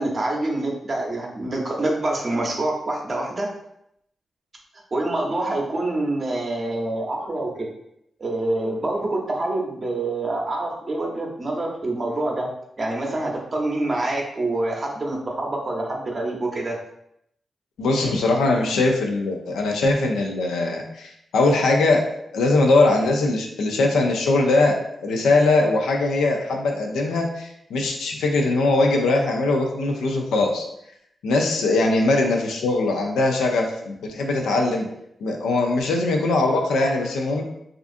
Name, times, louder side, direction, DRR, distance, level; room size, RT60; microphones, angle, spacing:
voice 1, 0.0-3.5 4.9-7.7 8.2-12.5 12.8-16.8, right 2 dB, 45° right, -1 dB, 0.6 m, -26 dB
voice 2, 17.8-22.0 22.3-24.7 25.0-30.6 31.2-34.9 35.2-37.4, left 2 dB, 85° left, 2 dB, 0.3 m, -21 dB
2.4 x 2.4 x 2.5 m, 0.77 s
supercardioid pair, 45°, 0 cm